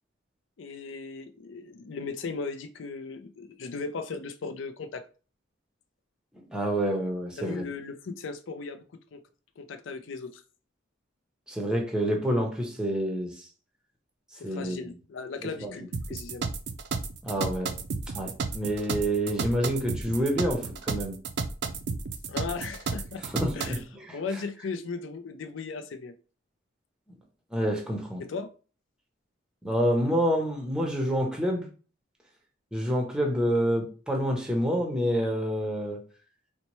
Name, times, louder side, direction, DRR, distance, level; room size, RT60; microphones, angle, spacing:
voice 1, 0.6-5.0 7.4-8.8 9.1-9.2 9.6-10.4 14.4-16.5 22.3-23.2 23.5-23.8 24.1-26.1 28.2-28.5, left 4 dB, 85° left, 0.4 m, -37 dB
voice 2, 6.5-7.7 11.5-13.4 14.4-14.9 15.6-15.7 17.2-17.7 18.1-21.2 23.2-23.8 24.1-24.2 27.5-28.2 29.6-31.7 32.7-36.0, equal, 5° right, 0.6 m, -28 dB
sound 1, 15.9-23.8, right 4 dB, 60° right, 0.4 m, -32 dB
4.1 x 2.1 x 3.0 m
head